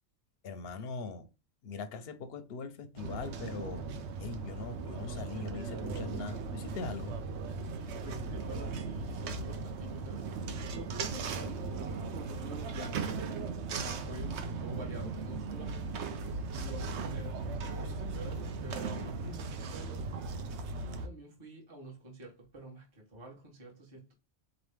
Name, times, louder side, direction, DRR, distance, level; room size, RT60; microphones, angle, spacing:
voice 1, 0.4-1.3 1.6-3.9 4.2-7.2, left 4 dB, 60° left, 0.7 m, -41 dB
sound 1, 3.0-21.1, right 4 dB, 65° right, 0.8 m, -38 dB
voice 2, 8.0-10.3 10.7-11.6 12.0-13.2 13.5-16.2 16.6-17.4 17.8-20.1 20.8-24.1, right 1 dB, 25° right, 1.0 m, -47 dB
4.0 x 3.0 x 3.4 m
omnidirectional pair, 1.3 m